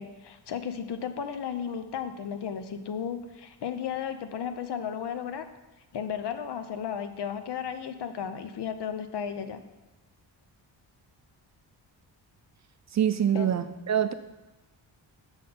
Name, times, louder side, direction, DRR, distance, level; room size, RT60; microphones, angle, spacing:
voice 1, 0.0-5.5 5.9-9.6 13.3-13.5, left 8 dB, 65° left, 9 dB, 0.7 m, -34 dB
voice 2, 12.9-14.1, right 9 dB, 40° right, 10 dB, 0.4 m, -25 dB
5.9 x 5.4 x 5.3 m, 1.1 s
cardioid pair, 90°, 44 cm